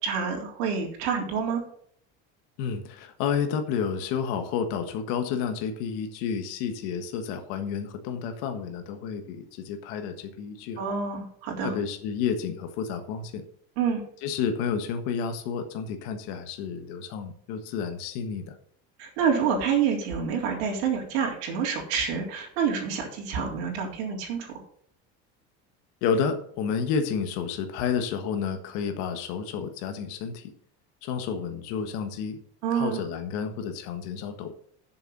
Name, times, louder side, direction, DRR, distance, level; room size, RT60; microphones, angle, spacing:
voice 1, 0.0-1.6 10.8-11.8 13.8-14.0 19.0-24.5 32.6-33.0, right 6 dB, 80° right, 0 dB, 3.7 m, -27 dB
voice 2, 2.6-10.9 11.6-13.4 14.2-18.5 26.0-30.5 31.0-32.4 32.7-34.5, left 6 dB, 65° left, 7 dB, 1.5 m, -30 dB
7.4 x 6.9 x 6.6 m, 0.62 s
cardioid pair, 175°, 31 cm